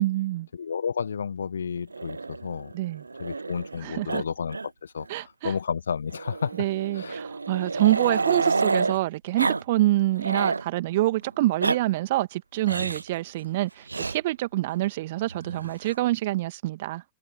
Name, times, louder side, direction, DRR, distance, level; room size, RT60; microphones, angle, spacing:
voice 1, 0.0-0.5 2.7-3.0 3.8-4.2 5.1-5.5 6.6-17.0, right 17 dB, 55° right, 2.0 m, -26 dB
voice 2, 0.5-2.7 3.2-6.5 6.9-7.2, left 6 dB, 70° left, 1.5 m, -31 dB
Growling, 1.9-3.8 4.1-4.2 4.5-4.7 5.0-5.1 6.1-9.0 9.4-9.6 9.9-10.6 11.4-11.8 12.6-13.1 13.9-14.2 15.3-16.0, right 3 dB, 80° right, 0.6 m, -29 dB
open air
figure-of-eight pair, 90°, 0 cm